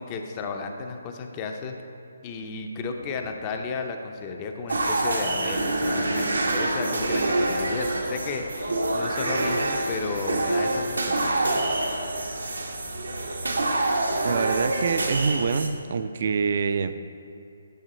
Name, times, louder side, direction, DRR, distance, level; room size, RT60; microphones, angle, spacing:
voice 1, 0.0-1.7 2.2-11.4, left 4 dB, 25° left, 4 dB, 0.5 m, -33 dB
sound 1, 3.0-3.3 4.9-5.1 6.7-7.1 7.7-10.5, left 2 dB, 85° left, 0.8 m, -43 dB
sound 2, 4.7-15.7, right 2 dB, 85° right, 0.8 m, -26 dB
voice 2, 14.2-16.9, right 5 dB, 55° right, 11 dB, 0.3 m, -25 dB
9.2 x 3.6 x 4.1 m, 2.7 s
figure-of-eight pair, 150°, 0 cm